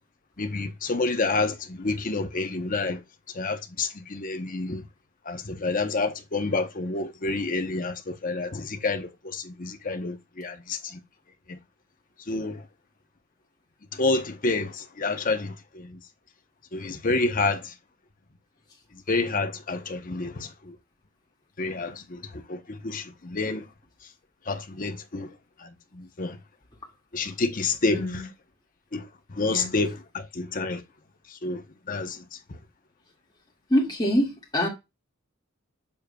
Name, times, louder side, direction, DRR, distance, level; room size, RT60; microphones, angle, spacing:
voice 1, 0.4-3.0 3.3-4.8 5.3-11.0 11.5-11.6 12.3-12.6 13.9-15.9 16.7-17.7 19.1-20.7 21.6-23.6 24.5-25.3 25.6-26.4 27.1-28.2 28.9-29.0 29.3-30.8 31.4-31.6 31.9-32.2, left 3 dB, 40° left, 0.9 m, -29 dB
voice 2, 27.9-28.3 29.5-29.7 33.7-34.7, equal, 20° left, 2.1 m, -25 dB
7.0 x 6.4 x 2.3 m
head